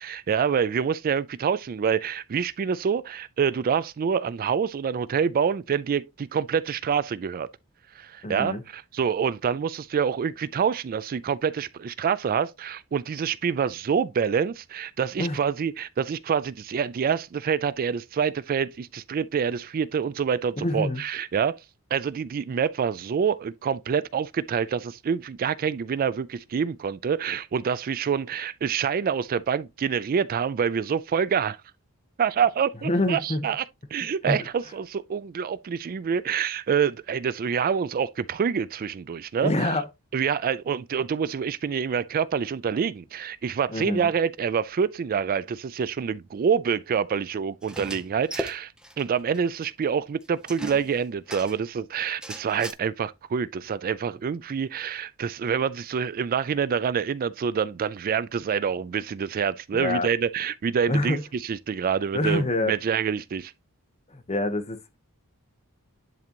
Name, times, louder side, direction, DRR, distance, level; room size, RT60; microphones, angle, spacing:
voice 1, 0.0-7.5 7.9-21.6 21.9-31.6 32.2-33.6 33.9-39.7 40.1-63.5, right 7 dB, 40° right, 0.3 m, -26 dB
voice 2, 8.2-8.6 15.2-15.4 20.6-21.0 32.8-33.5 34.2-34.5 39.4-39.8 43.7-44.1 59.7-60.1 60.9-61.2 62.1-62.7 64.1-64.8, left 1 dB, 30° left, 1.0 m, -26 dB
sound 1, 47.6-49.0 49.3-49.4 49.6-49.7 50.5-51.7 52.2-52.7, equal, 5° right, 0.8 m, -37 dB
10.5 x 3.9 x 2.9 m
head